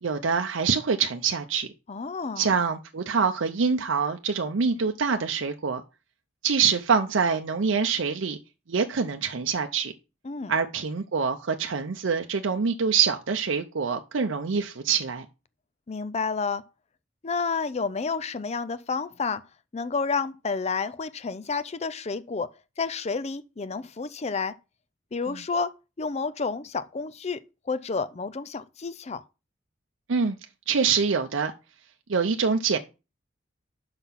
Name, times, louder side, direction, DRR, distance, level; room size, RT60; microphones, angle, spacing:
voice 1, 0.0-1.7 2.4-5.8 6.4-8.4 8.7-9.9 10.5-15.3 25.3-25.4 30.1-30.4 30.7-31.5 32.1-32.8, right 5 dB, 75° right, 0.6 m, -25 dB
voice 2, 1.9-2.5 10.2-10.5 15.9-16.6 17.2-19.4 19.7-22.5 22.8-24.5 25.1-27.4 27.7-29.2, left 4 dB, 35° left, 0.5 m, -30 dB
5.7 x 5.6 x 5.8 m
head